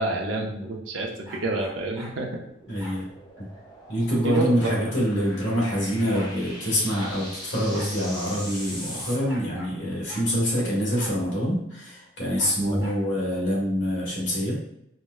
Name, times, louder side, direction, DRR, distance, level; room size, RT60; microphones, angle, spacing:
voice 1, 0.0-2.3 4.2-4.7 12.5-12.8, right 2 dB, 75° right, 0 dB, 0.6 m, -28 dB
sound 1, 1.2-2.2 2.8-3.0 4.3-4.8 5.7-5.8 5.9-6.3 7.0-7.2 7.7-7.9 8.2-8.3 9.3-9.8 10.1-10.3 11.0-11.2 12.4-13.0, equal, 15° right, 0.9 m, -43 dB
sound 2, 1.7-9.2, equal, 20° left, 1.0 m, -41 dB
voice 2, 2.7-3.1 3.4-3.5 3.9-14.5, equal, 65° left, -5 dB, 1.4 m, -25 dB
4.3 x 2.2 x 2.3 m, 0.78 s
head